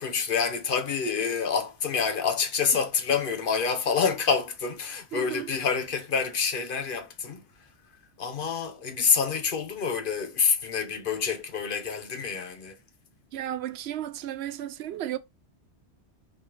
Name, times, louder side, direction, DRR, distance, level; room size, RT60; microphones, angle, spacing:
voice 1, 0.0-7.4 8.2-12.8, left 6 dB, 55° left, 1.0 m, -27 dB
voice 2, 5.1-5.5 13.3-15.2, right 12 dB, 70° right, 0.8 m, -34 dB
5.0 x 3.4 x 3.0 m
omnidirectional pair, 1.2 m